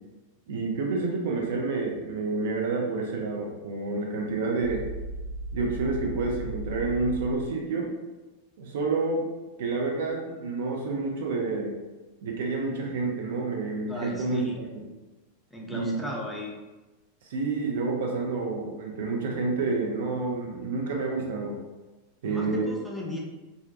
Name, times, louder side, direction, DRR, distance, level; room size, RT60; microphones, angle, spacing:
voice 1, 0.5-4.8 5.5-7.9 8.6-9.3 9.6-11.7 12.2-14.4 15.7-15.9 17.2-21.6 22.2-22.7, right 3 dB, 55° right, 0 dB, 0.4 m, -29 dB
sound 1, 4.6-7.2, right 1 dB, 65° left, 0.4 m, -36 dB
voice 2, 13.9-14.6 15.5-16.5 22.2-23.2, left 1 dB, ahead, -3 dB, 0.4 m, -36 dB
2.4 x 2.1 x 2.5 m, 1.1 s
figure-of-eight pair, 90°, 0 cm